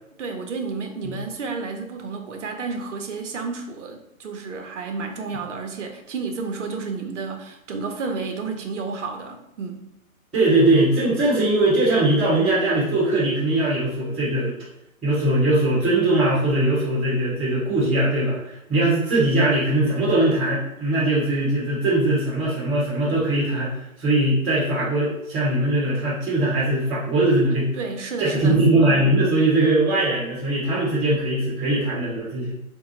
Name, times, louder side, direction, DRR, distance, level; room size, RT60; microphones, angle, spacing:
voice 1, 0.2-9.9 27.8-28.6, right 4 dB, 55° right, 4 dB, 0.6 m, -31 dB
voice 2, 10.3-14.5 15.0-27.7 28.2-32.6, right 2 dB, ahead, -19 dB, 0.3 m, -21 dB
3.8 x 2.2 x 2.9 m, 0.84 s
hypercardioid pair, 140°, 42 cm